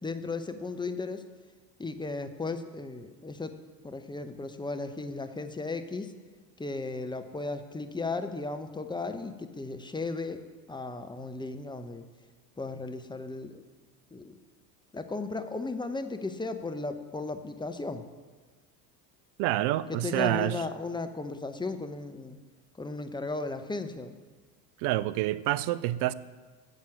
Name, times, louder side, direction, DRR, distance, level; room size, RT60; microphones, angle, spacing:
voice 1, 0.0-1.2 1.8-3.6 3.8-6.1 6.6-10.4 10.7-12.0 12.6-13.6 14.1-14.3 14.9-18.1 19.9-22.4 22.8-24.1, left 3 dB, 10° left, 0.9 m, -35 dB
voice 2, 19.4-20.6 24.8-26.1, right 15 dB, 55° right, 0.6 m, -27 dB
9.8 x 7.5 x 7.5 m
hypercardioid pair, 75°, 50 cm